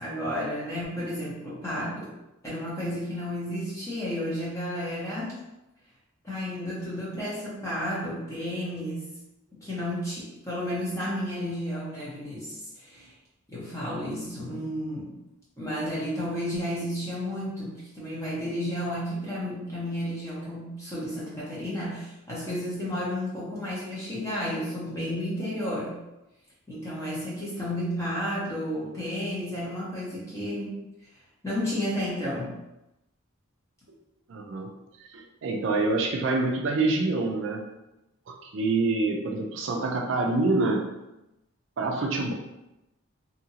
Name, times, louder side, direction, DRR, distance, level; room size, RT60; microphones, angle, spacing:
voice 1, 0.0-2.1 2.4-5.4 6.2-9.2 9.5-13.1 13.5-15.2 15.6-26.0 26.7-30.8 31.4-32.5, equal, 15° left, -8 dB, 0.9 m, -32 dB
voice 2, 34.3-34.7 35.1-37.7 38.3-40.9 41.8-42.3, right 3 dB, 60° right, 1 dB, 0.4 m, -26 dB
2.8 x 2.5 x 2.7 m, 0.93 s
head